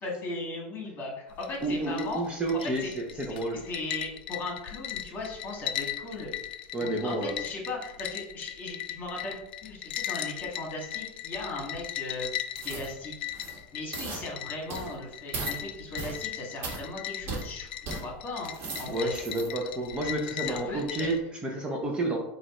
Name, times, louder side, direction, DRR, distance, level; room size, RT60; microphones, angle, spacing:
voice 1, 0.0-2.2 2.8-2.9 3.7-6.3 6.8-9.4 9.6-12.3 12.6-13.3 13.7-19.1 20.4-21.1, left 2 dB, 35° left, -1 dB, 1.6 m, -37 dB
sound 1, 1.3-21.2, left 12 dB, 85° left, 0.4 m, -38 dB
voice 2, 1.6-3.6 6.7-7.3 18.9-22.2, right 2 dB, 20° right, 1 dB, 0.7 m, -30 dB
sound 2, 12.6-12.9 13.3-13.6 13.9-14.2 14.7-14.9 15.3-15.6 16.0-16.2 16.6-16.8 17.3-17.4 17.9-18.0 18.4-19.5 20.0-20.1, right 3 dB, 45° right, 1.2 m, -37 dB
4.8 x 2.4 x 4.2 m, 0.82 s
supercardioid pair, 125°, 5 cm